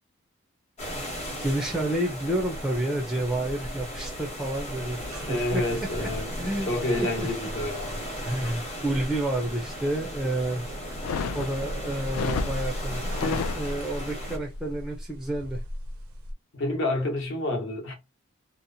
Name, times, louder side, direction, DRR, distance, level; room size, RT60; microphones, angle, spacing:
sound 1, 0.8-14.4, equal, 30° left, 0.9 m, -37 dB
voice 1, 1.4-6.1 6.4-6.7 7.0-7.3 8.2-10.6 11.3-15.6, right 1 dB, ahead, 0.4 m, -30 dB
sound 2, 3.9-16.3, equal, 85° right, 0.6 m, -38 dB
voice 2, 5.1-6.3 6.7-8.0 16.5-17.9, left 1 dB, 60° left, 0.9 m, -29 dB
sound 3, 10.9-14.1, left 5 dB, 85° left, 0.3 m, -32 dB
2.8 x 2.0 x 2.6 m
head